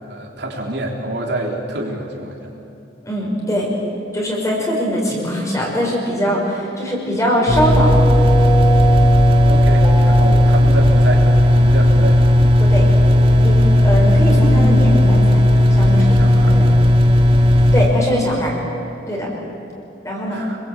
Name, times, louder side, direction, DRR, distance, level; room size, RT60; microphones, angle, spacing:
voice 1, 0.0-2.4 9.5-12.3 15.8-16.6 20.3-20.6, right 2 dB, 65° right, 0 dB, 3.8 m, -27 dB
voice 2, 3.0-3.7 4.1-7.9 12.6-12.9 13.4-15.4 15.7-16.2 16.4-16.7 17.7-18.5 19.1-19.3 20.0-20.4, equal, 15° left, -2 dB, 5.6 m, -21 dB
sound 1, 7.4-18.8, right 3 dB, 5° right, 3.1 m, -28 dB
sound 2, 7.5-17.9, left 1 dB, 30° right, 1.8 m, -13 dB
27.0 x 22.0 x 8.6 m, 2.9 s
head